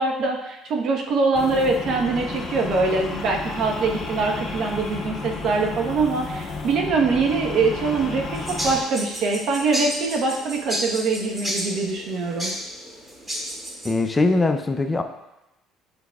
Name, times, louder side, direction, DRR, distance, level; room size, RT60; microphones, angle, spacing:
voice 1, 0.0-12.5, right 3 dB, 60° right, 1 dB, 1.1 m, -23 dB
sound 1, 1.3-8.8, left 4 dB, 40° left, 1.8 m, -32 dB
sound 2, 8.3-13.9, equal, 15° right, 2.2 m, -32 dB
voice 2, 13.8-15.0, left 3 dB, 20° left, 6 dB, 0.5 m, -21 dB
7.9 x 5.8 x 2.3 m, 0.94 s
supercardioid pair, 75°, 0 cm